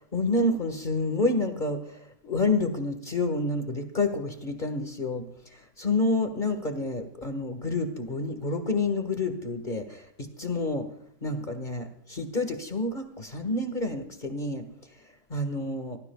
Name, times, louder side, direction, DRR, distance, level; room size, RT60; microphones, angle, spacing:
voice 1, 0.1-5.3 5.5-10.9 11.2-14.6 15.3-16.0, left 2 dB, 45° left, 7 dB, 1.7 m, -29 dB
25.5 x 18.0 x 2.3 m, 0.65 s
omnidirectional pair, 1.1 m